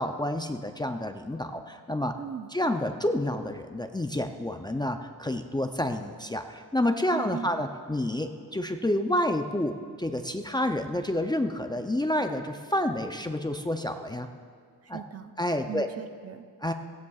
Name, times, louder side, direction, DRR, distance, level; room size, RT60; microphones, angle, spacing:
voice 1, 0.0-2.1 2.5-14.3 14.9-15.0 15.4-15.9 16.6-16.7, left 1 dB, 10° left, 5 dB, 0.4 m, -29 dB
voice 2, 2.2-2.5 7.1-7.5 14.8-15.3 15.7-16.4, right 8 dB, 40° right, 9 dB, 0.5 m, -38 dB
17.0 x 15.0 x 2.4 m, 2.1 s
cardioid pair, 120°, 39 cm